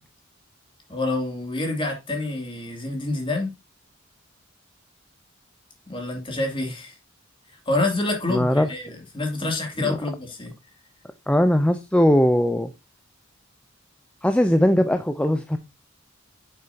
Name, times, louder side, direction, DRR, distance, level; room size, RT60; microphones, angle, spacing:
voice 1, 0.9-3.5 5.9-7.0 7.7-10.5, left 2 dB, 25° left, 2.7 m, -27 dB
voice 2, 8.3-8.7 9.8-10.0 11.3-12.7 14.2-15.6, equal, 5° left, 0.5 m, -20 dB
8.5 x 6.8 x 2.8 m
head